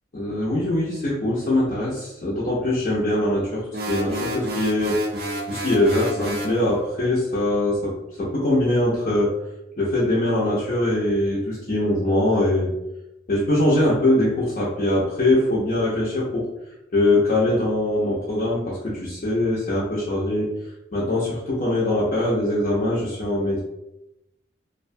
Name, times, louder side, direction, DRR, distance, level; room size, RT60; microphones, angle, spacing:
voice 1, 0.1-3.6 3.9-5.0 5.5-9.3 9.8-12.7 13.3-16.4 16.9-20.5 20.9-23.6, left 1 dB, 45° left, -8 dB, 0.5 m, -22 dB
sound 1, 3.7-6.6, equal, 55° right, 0.4 m, -29 dB
2.4 x 2.1 x 2.5 m, 0.91 s
head